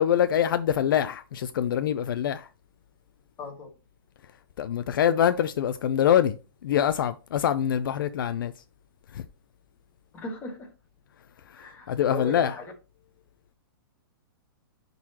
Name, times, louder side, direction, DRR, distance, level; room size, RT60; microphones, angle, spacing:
voice 1, 0.0-2.5 4.6-6.4 6.6-8.5 9.1-9.2 11.5-12.5, left 9 dB, 60° left, 0.5 m, -24 dB
voice 2, 3.4-3.7 10.1-10.7 11.5-12.7, left 2 dB, 15° left, 1.6 m, -37 dB
11.0 x 4.0 x 2.8 m
hypercardioid pair, 170°, 12 cm